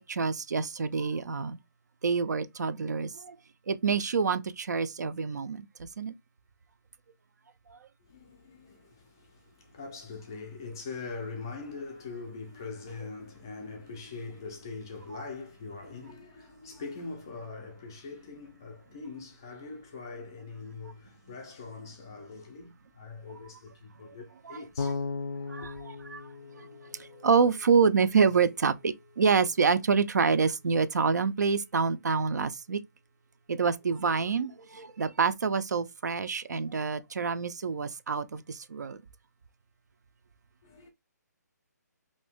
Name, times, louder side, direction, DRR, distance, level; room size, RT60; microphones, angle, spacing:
voice 1, 0.0-1.6 2.0-3.3 3.7-6.1 24.1-24.2 24.5-24.9 25.5-26.3 26.6-26.7 27.0-32.8 33.5-39.0, right 5 dB, 70° right, 0.5 m, -27 dB
voice 2, 8.1-25.0 25.3-25.7 40.6-40.9, left 4 dB, 15° left, 0.4 m, -42 dB
Bass guitar, 24.8-27.8, left 4 dB, 85° left, 0.5 m, -37 dB
2.9 x 2.6 x 3.4 m
hypercardioid pair, 175°, 10 cm